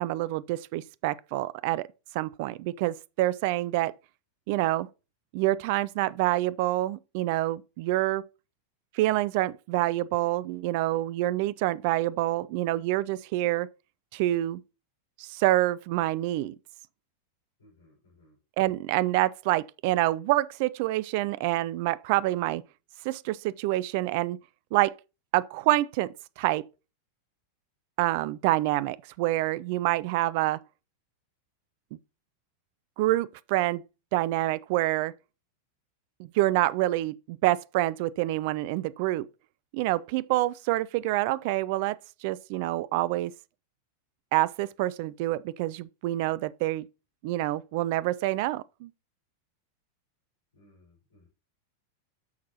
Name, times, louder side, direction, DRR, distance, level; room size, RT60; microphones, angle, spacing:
voice 1, 0.0-1.9 2.1-3.9 4.5-4.9 5.3-8.2 8.9-13.7 14.1-14.6 15.2-16.5 18.6-22.6 23.0-24.4 24.7-24.9 25.3-26.1 26.4-26.6 28.0-30.6 33.0-33.8 34.1-35.1 36.2-39.2 39.7-43.3 44.3-46.9 47.2-48.9, right 16 dB, 50° right, 0.4 m, -27 dB
voice 2, 17.6-18.4 50.5-51.3, left 1 dB, 65° left, 5.5 m, -60 dB
9.3 x 6.5 x 2.9 m
figure-of-eight pair, 90°, 0 cm